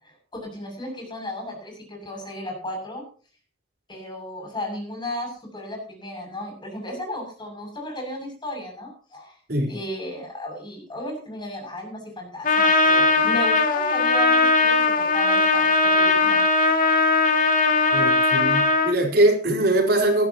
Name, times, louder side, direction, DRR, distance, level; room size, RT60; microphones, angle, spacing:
voice 1, 0.0-3.0 3.9-9.4 9.7-16.5 16.8-17.0, left 1 dB, 25° left, 2 dB, 7.2 m, -35 dB
Trumpet, 12.4-18.9, left 3 dB, 50° left, 2.4 m, -19 dB
voice 2, 17.9-20.3, right 1 dB, 60° right, 1 dB, 4.4 m, -21 dB
19.5 x 14.0 x 3.0 m, 0.40 s
head